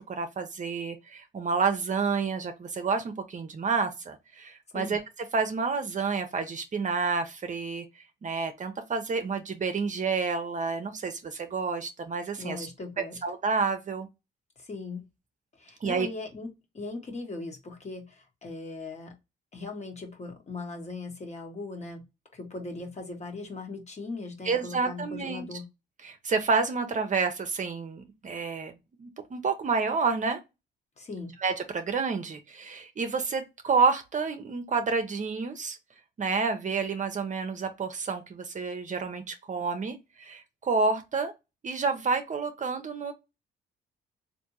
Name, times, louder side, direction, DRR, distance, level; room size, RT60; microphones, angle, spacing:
voice 1, 0.1-5.0 5.3-7.9 8.2-12.7 13.0-14.1 15.8-16.1 24.4-25.5 26.0-28.7 29.0-30.4 31.4-35.8 36.2-41.3 41.6-43.1, right 4 dB, 40° right, 0.7 m, -29 dB
voice 2, 12.4-13.2 14.6-15.0 15.6-16.5 16.7-19.1 19.5-22.0 22.3-25.7 31.0-31.3, left 3 dB, 35° left, 1.2 m, -39 dB
3.4 x 2.6 x 2.8 m
cardioid pair, 90°, 20 cm